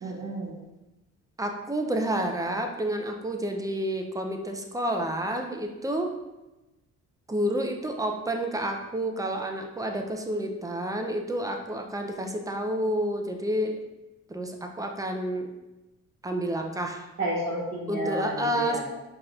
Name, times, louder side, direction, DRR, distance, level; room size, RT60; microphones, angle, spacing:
voice 1, 0.0-0.6 17.2-18.8, right 1 dB, 50° right, -7 dB, 1.1 m, -31 dB
voice 2, 1.4-6.1 7.3-13.8 14.3-15.5 16.2-17.1 17.9-18.8, right 1 dB, 10° right, 3 dB, 0.4 m, -29 dB
5.0 x 2.9 x 2.4 m, 1.0 s
cardioid pair, 90°, 30 cm